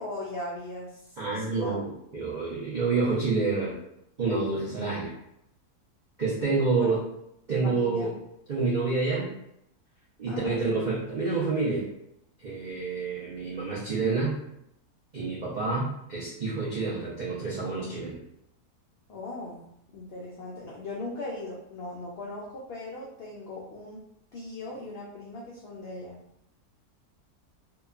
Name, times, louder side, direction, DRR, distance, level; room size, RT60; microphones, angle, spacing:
voice 1, 0.0-1.8 6.8-6.9 7.6-8.1 10.3-10.8 19.1-19.6 19.9-24.0 24.3-26.2, left 2 dB, 85° left, -4 dB, 0.5 m, -39 dB
voice 2, 1.2-3.8 4.2-5.1 6.2-7.0 7.5-8.1 8.5-9.3 10.2-11.9 12.4-14.4 15.1-18.2, right 4 dB, 70° right, -8 dB, 0.4 m, -28 dB
2.8 x 2.3 x 2.3 m, 0.77 s
omnidirectional pair, 1.6 m